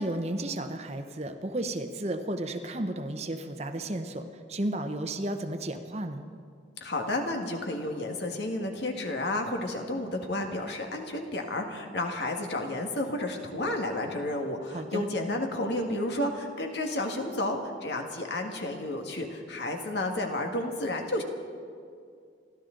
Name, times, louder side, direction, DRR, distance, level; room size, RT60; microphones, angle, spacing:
voice 1, 0.0-6.2 14.7-15.0, right 1 dB, 35° right, 7 dB, 0.9 m, -33 dB
voice 2, 6.8-21.2, left 1 dB, 70° left, 3 dB, 1.8 m, -31 dB
29.0 x 12.5 x 3.9 m, 2.3 s
head